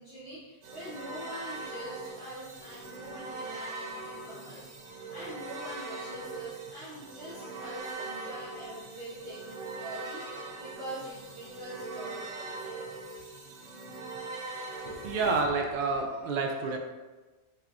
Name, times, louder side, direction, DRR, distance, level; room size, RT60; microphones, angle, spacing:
voice 1, 0.0-4.6 4.9-12.8, right 1 dB, 50° left, -14 dB, 1.4 m, -44 dB
sound 1, 0.6-15.4, right 3 dB, 85° right, 0.9 m, -41 dB
voice 2, 14.8-16.8, right 3 dB, 60° right, 1 dB, 0.5 m, -29 dB
4.4 x 2.6 x 2.5 m, 1.2 s
omnidirectional pair, 1.2 m